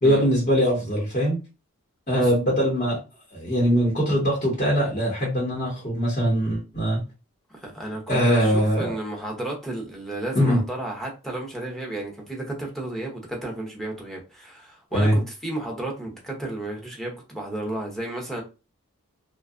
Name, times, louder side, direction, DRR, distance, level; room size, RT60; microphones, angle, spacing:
voice 1, 0.0-1.4 2.1-3.0 3.3-7.0 8.1-8.9 10.3-10.6 14.9-15.2, equal, 35° left, -5 dB, 0.9 m, -22 dB
voice 2, 7.5-18.4, right 1 dB, ahead, -1 dB, 0.6 m, -33 dB
2.7 x 2.3 x 2.4 m, 0.29 s
head